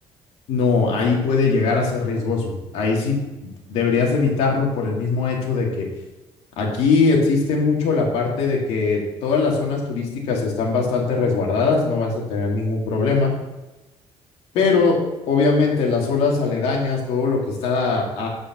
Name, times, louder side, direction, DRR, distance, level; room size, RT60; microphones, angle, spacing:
voice 1, 0.5-5.9 6.6-13.3 14.5-15.0 15.3-18.3, left 4 dB, 80° left, -1 dB, 2.2 m, -21 dB
8.3 x 5.1 x 6.1 m, 1.1 s
cardioid pair, 160°, 11 cm